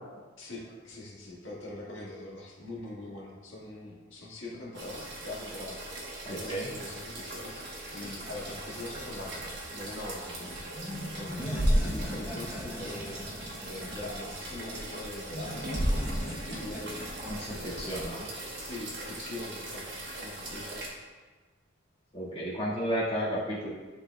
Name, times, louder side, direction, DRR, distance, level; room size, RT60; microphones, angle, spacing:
voice 1, 0.4-7.7 7.9-10.6 11.2-11.4 11.7-13.2 13.6-17.0 17.5-18.1 18.6-20.8, left 2 dB, 70° left, -5 dB, 1.8 m, -42 dB
sound 1, 4.7-20.9, right 1 dB, 60° right, 1.4 m, -41 dB
voice 2, 6.2-6.7 11.3-11.7 17.3-18.2 22.1-23.7, equal, 30° left, -7 dB, 1.8 m, -33 dB
sound 2, 7.9-18.1, equal, 5° right, 0.9 m, -34 dB
11.0 x 3.9 x 2.3 m, 1.3 s
head